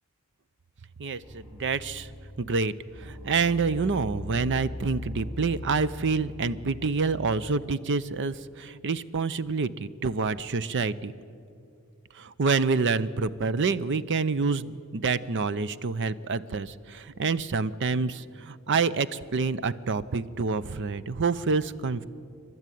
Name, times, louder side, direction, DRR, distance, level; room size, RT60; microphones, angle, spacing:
voice 1, 1.0-2.1 2.4-11.1 12.1-22.0, right 4 dB, 55° right, 16 dB, 0.6 m, -27 dB
sound 1, 1.2-2.4 3.0-7.0, left 1 dB, 10° right, 2.5 m, -40 dB
28.5 x 12.0 x 9.2 m, 2.5 s
head